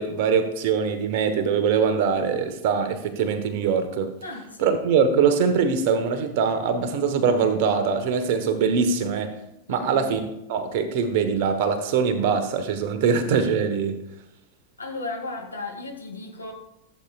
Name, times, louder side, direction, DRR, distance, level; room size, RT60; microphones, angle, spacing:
voice 1, 0.0-4.1 4.6-9.3 9.7-10.2 10.5-14.0, right 6 dB, 50° right, 9 dB, 1.2 m, -22 dB
voice 2, 4.2-4.8 9.7-10.1 14.8-16.5, left 2 dB, 80° left, 1 dB, 2.3 m, -35 dB
15.0 x 8.2 x 2.4 m, 0.84 s
figure-of-eight pair, 90°, 0 cm